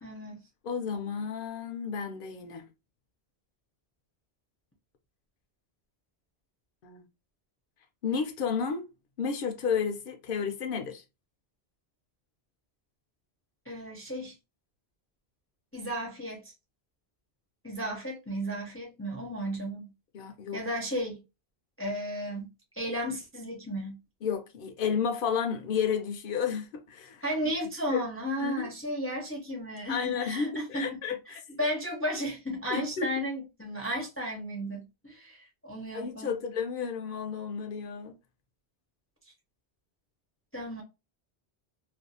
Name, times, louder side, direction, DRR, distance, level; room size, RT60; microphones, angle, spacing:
voice 1, 0.0-0.4 13.7-14.3 15.7-16.5 17.6-19.9 20.5-21.2 21.8-24.0 27.2-31.0 31.3-36.4 40.5-40.8, equal, 15° left, 0.5 m, -34 dB
voice 2, 0.6-2.6 6.8-7.0 8.0-8.8 9.2-11.0 20.1-20.6 24.2-27.2 27.9-28.0 28.4-28.7 29.9-31.4 32.7-33.1 35.9-38.1, left 6 dB, 60° left, 0.7 m, -32 dB
2.5 x 2.3 x 2.6 m
omnidirectional pair, 1.1 m